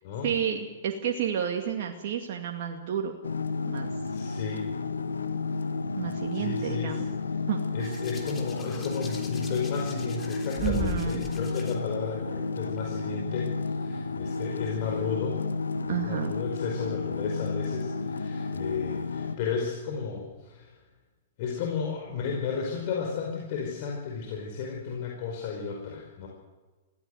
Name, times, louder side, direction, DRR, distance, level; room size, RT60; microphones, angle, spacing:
voice 1, 0.2-3.1 3.7-3.9 6.0-7.1 7.5-8.0 10.6-11.3 15.9-16.3, right 9 dB, 55° right, 2 dB, 2.3 m, -31 dB
sound 1, 3.2-19.4, left 4 dB, 85° left, 1.6 m, -32 dB
voice 2, 4.1-4.7 6.3-7.0 7.7-15.4 15.9-20.7 21.4-26.3, left 6 dB, 50° left, 0 dB, 5.1 m, -33 dB
Hands, 7.8-11.7 12.8-13.0, left 3 dB, 20° left, 3.4 m, -38 dB
23.0 x 16.5 x 8.0 m, 1.3 s
hypercardioid pair, 115°, 0 cm